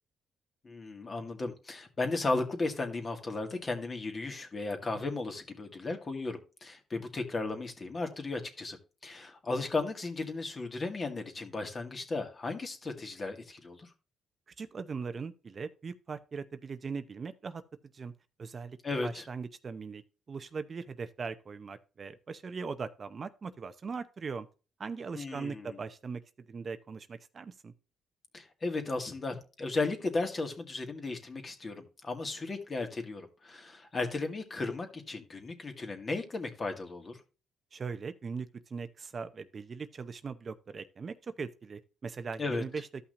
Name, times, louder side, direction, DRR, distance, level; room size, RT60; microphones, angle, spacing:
voice 1, 0.6-8.8 9.0-13.9 18.8-19.2 25.1-25.8 28.3-37.2 42.4-42.6, left 3 dB, 35° left, 2.0 m, -35 dB
voice 2, 14.6-17.6 17.9-18.1 18.4-18.8 19.0-20.0 20.3-24.5 24.8-26.2 26.5-27.7 37.7-42.9, right 5 dB, 40° right, 0.7 m, -40 dB
14.0 x 5.7 x 2.6 m
cardioid pair, 90°, 0 cm